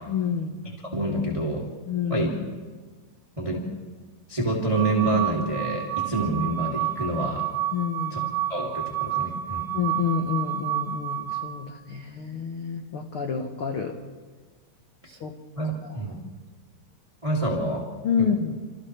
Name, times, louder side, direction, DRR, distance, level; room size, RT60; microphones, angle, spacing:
voice 1, 0.1-0.7 1.9-2.3 7.7-8.3 9.7-14.0 15.1-15.3 18.0-18.6, left 6 dB, 85° left, 3 dB, 1.2 m, -28 dB
voice 2, 0.8-1.7 2.1-2.3 3.4-3.7 4.3-7.5 8.1-9.7 15.5-16.2 17.2-17.9 18.2-18.3, right 2 dB, 10° right, -3 dB, 2.0 m, -27 dB
sound 1, 4.7-11.7, right 13 dB, 80° right, 1.2 m, -30 dB
28.5 x 28.0 x 3.4 m, 1.4 s
omnidirectional pair, 4.6 m